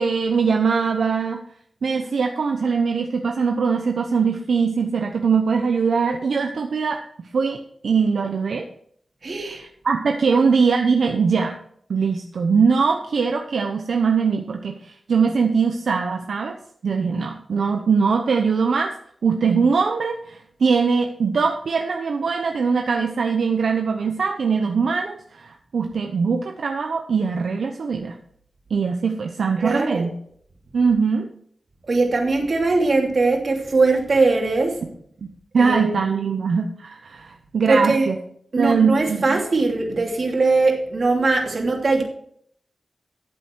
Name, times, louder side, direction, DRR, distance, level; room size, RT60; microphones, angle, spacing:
voice 1, 0.0-1.4 1.8-7.0 7.3-8.7 9.5-11.6 11.9-16.6 16.8-18.9 19.2-28.1 28.7-30.1 30.7-31.3 35.5-38.2 38.6-39.2, right 5 dB, 85° right, 3 dB, 0.9 m, -21 dB
voice 2, 9.2-9.6 29.6-30.1 31.9-34.8 35.6-36.0 37.7-38.1 38.5-42.0, right 3 dB, 55° right, 1 dB, 2.9 m, -20 dB
13.5 x 7.8 x 4.7 m, 0.64 s
wide cardioid pair, 80°, 0 cm